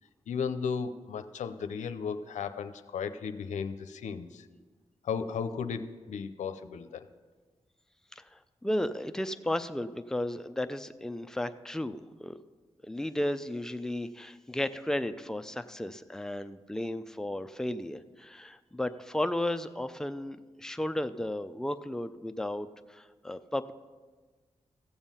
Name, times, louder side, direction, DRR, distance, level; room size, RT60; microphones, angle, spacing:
voice 1, 0.3-4.5 5.0-7.1, left 6 dB, 90° left, 9 dB, 0.6 m, -35 dB
voice 2, 8.2-12.4 12.8-23.7, left 1 dB, 5° left, 9 dB, 0.6 m, -34 dB
15.5 x 7.2 x 5.6 m, 1.4 s
cardioid pair, 50°, 12 cm